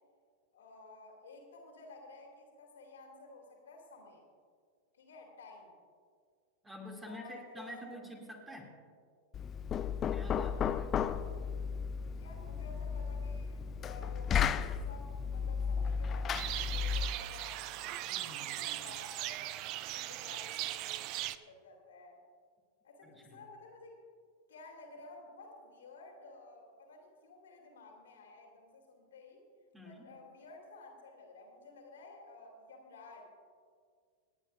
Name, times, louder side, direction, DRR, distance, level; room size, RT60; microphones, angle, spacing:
voice 1, 0.5-4.2 5.0-5.7 7.0-8.0 11.1-11.4 12.1-19.5 19.9-22.2 22.8-24.0 24.5-29.4 29.8-33.2, left 3 dB, 65° left, 0 dB, 2.7 m, -53 dB
voice 2, 6.6-8.8 10.1-11.0 18.0-19.0 23.0-23.4 29.7-30.1, left 1 dB, 10° right, 0 dB, 2.4 m, -48 dB
Knock, 9.3-17.2, left 7 dB, 25° left, 0.4 m, -34 dB
sound 1, 16.3-21.4, right 14 dB, 40° right, 0.5 m, -39 dB
28.0 x 10.5 x 2.5 m, 2.1 s
figure-of-eight pair, 90°, 0 cm